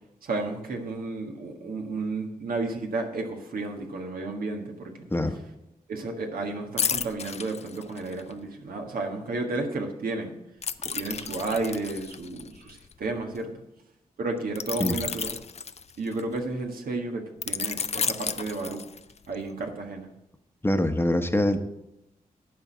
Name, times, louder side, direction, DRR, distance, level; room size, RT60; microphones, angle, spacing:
voice 1, 0.2-4.9 5.9-10.3 10.9-13.5 14.2-15.4 16.0-18.8 19.3-20.1, right 3 dB, 75° right, 2 dB, 1.5 m, -32 dB
sound 1, 6.8-8.3 10.6-13.4 14.6-16.4 17.4-19.3 19.7-19.9, left 6 dB, 45° left, 0.5 m, -32 dB
voice 2, 20.6-21.6, left 1 dB, 15° left, 7 dB, 1.1 m, -24 dB
11.0 x 4.5 x 7.3 m, 0.87 s
cardioid pair, 50°, 15 cm